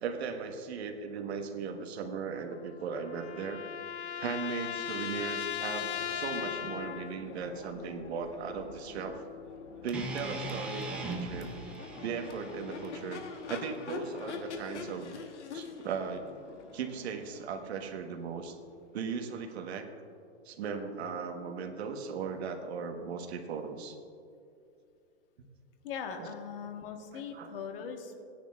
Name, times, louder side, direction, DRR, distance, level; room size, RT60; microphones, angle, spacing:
voice 1, 0.0-3.6 4.2-9.2 9.8-11.5 12.0-13.2 13.5-15.1 15.5-16.3 16.7-18.6 18.9-19.9 20.4-23.9 26.2-26.3 27.1-27.5, right 5 dB, 70° right, 5 dB, 1.3 m, -37 dB
sound 1, 2.5-7.3, left 9 dB, 70° left, 0.9 m, -37 dB
Crowd / Race car auto racing / Accelerating revving vroom, 5.6-19.4, left 5 dB, 85° left, 1.2 m, -45 dB
sound 2, 9.9-14.1, right 2 dB, 5° right, 0.4 m, -40 dB
voice 2, 25.8-28.2, left 6 dB, 55° left, 5 dB, 1.2 m, -40 dB
16.5 x 10.0 x 2.4 m, 2.5 s
hypercardioid pair, 155°, 34 cm